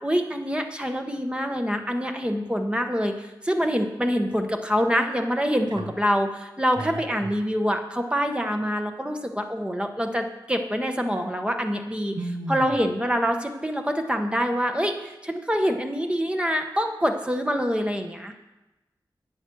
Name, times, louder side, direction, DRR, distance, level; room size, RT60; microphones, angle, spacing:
voice 1, 0.0-12.2 12.5-18.3, equal, 10° right, 4 dB, 1.2 m, -25 dB
voice 2, 6.8-7.3 12.1-12.7, right 2 dB, 60° right, 7 dB, 1.1 m, -33 dB
9.4 x 8.2 x 6.3 m, 1.0 s
wide cardioid pair, 55°, 8 cm